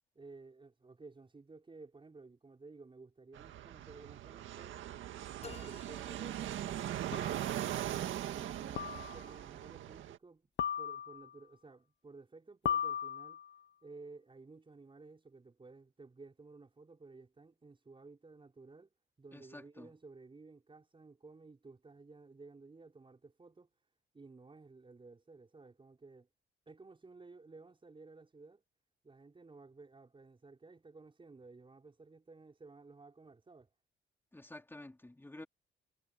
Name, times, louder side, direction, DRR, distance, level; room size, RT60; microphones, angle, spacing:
voice 1, 0.1-4.9 5.4-7.3 7.7-10.5 10.8-13.4 13.8-26.3 26.7-28.6 29.0-33.7, right 3 dB, 25° right, 6.0 m, -55 dB
Fixed-wing aircraft airplane, 3.3-10.2, right 12 dB, 80° right, 1.8 m, -40 dB
sound 1, 5.4-7.1, left 5 dB, 30° left, 1.6 m, -54 dB
sound 2, 5.5-5.6 7.1-7.5 8.8-9.3 10.6-11.4 12.7-13.6, left 9 dB, 65° left, 0.9 m, -37 dB
voice 2, 19.3-19.9 34.3-35.5, left 1 dB, 10° left, 3.5 m, -50 dB
cardioid pair, 90°, 20 cm